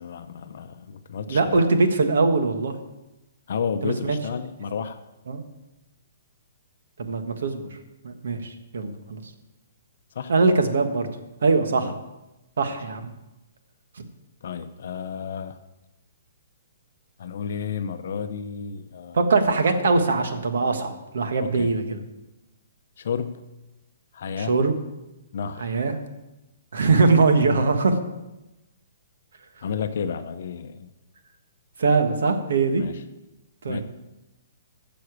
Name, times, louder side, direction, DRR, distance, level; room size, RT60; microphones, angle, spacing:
voice 1, 0.0-1.6 3.5-5.0 10.1-10.3 11.8-11.9 12.7-12.8 14.4-15.6 17.2-19.2 21.4-21.7 23.0-23.5 24.1-24.6 25.3-25.8 29.6-30.9 32.8-33.0 33.7-33.8, left 6 dB, 55° left, 9 dB, 0.6 m, -31 dB
voice 2, 1.3-2.7 3.8-4.2 5.3-5.4 7.1-7.6 8.0-9.2 10.3-11.1 11.4-11.9 12.6-13.0 19.1-22.0 24.4-24.7 25.6-25.9 26.7-28.0 31.8-32.8 33.6-33.8, right 3 dB, 75° right, 7 dB, 1.5 m, -21 dB
9.9 x 7.0 x 8.2 m, 0.99 s
hypercardioid pair, 170°, 0 cm